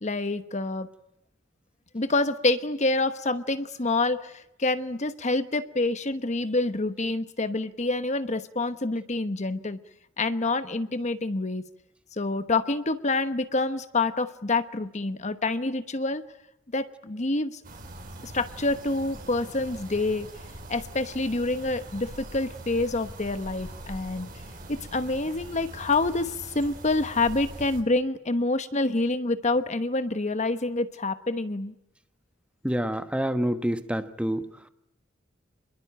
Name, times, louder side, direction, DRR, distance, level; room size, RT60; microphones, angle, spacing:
voice 1, 0.0-0.9 1.9-9.8 10.2-11.6 12.2-16.2 16.7-17.6 18.2-20.3 20.7-24.3 24.7-31.7, left 2 dB, 35° left, 11 dB, 1.1 m, -27 dB
sound 1, 17.6-27.8, right 1 dB, 45° right, 5.1 m, -42 dB
voice 2, 32.6-34.4, equal, 5° right, 10 dB, 1.1 m, -27 dB
26.0 x 22.0 x 8.9 m, 0.84 s
head